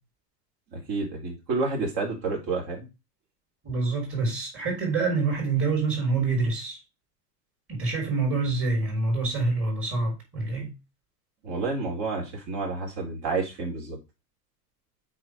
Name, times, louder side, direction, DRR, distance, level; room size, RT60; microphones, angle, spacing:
voice 1, 0.7-2.9 11.4-14.0, right 3 dB, 50° right, 4.3 m, -30 dB
voice 2, 3.6-6.8 7.7-10.7, right 3 dB, 25° right, 4.1 m, -26 dB
7.7 x 4.9 x 4.8 m
supercardioid pair, 140°, 48 cm